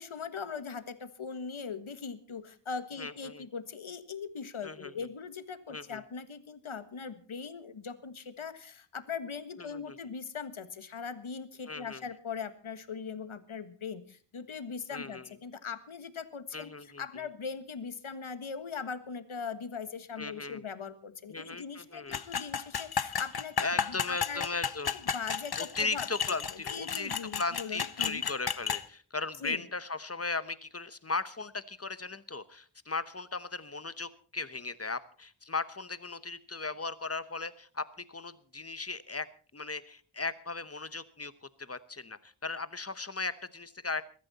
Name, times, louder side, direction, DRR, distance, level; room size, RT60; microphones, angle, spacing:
voice 1, 0.0-24.5 25.1-26.1 26.7-28.2 29.4-29.6, left 6 dB, 75° left, 11 dB, 1.6 m, -40 dB
voice 2, 3.0-3.5 4.6-5.1 5.7-6.0 9.6-10.0 11.7-12.0 14.9-15.3 16.5-17.2 20.2-20.6 21.3-22.2 23.6-25.0 25.6-39.3 39.5-44.0, left 3 dB, 30° left, 14 dB, 1.0 m, -37 dB
sound 1, 22.1-28.8, left 7 dB, 50° left, 0.9 m, -33 dB
22.0 x 13.0 x 4.2 m, 0.41 s
wide cardioid pair, 100°, 48 cm